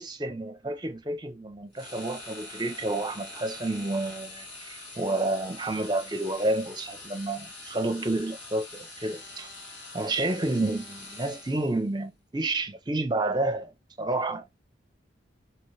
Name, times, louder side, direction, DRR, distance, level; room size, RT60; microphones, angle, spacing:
voice 1, 0.0-9.5 9.9-13.7 14.0-14.5, right 2 dB, 20° right, 0.6 m, -30 dB
sound 1, 1.7-11.8, left 2 dB, 80° left, 1.7 m, -44 dB
4.4 x 2.9 x 3.2 m
head